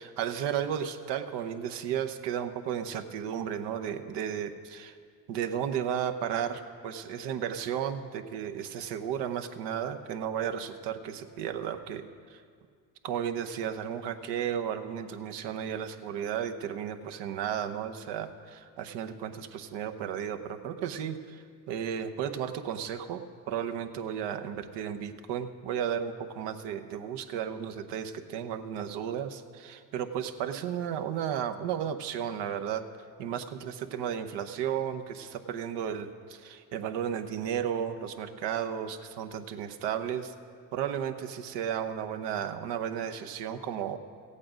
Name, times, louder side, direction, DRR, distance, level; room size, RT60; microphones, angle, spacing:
voice 1, 0.0-5.0 5.3-12.4 13.0-32.9 33.2-40.3 40.7-44.0, right 9 dB, 70° right, 7 dB, 0.9 m, -34 dB
15.0 x 8.6 x 5.1 m, 2.1 s
supercardioid pair, 85°, 44 cm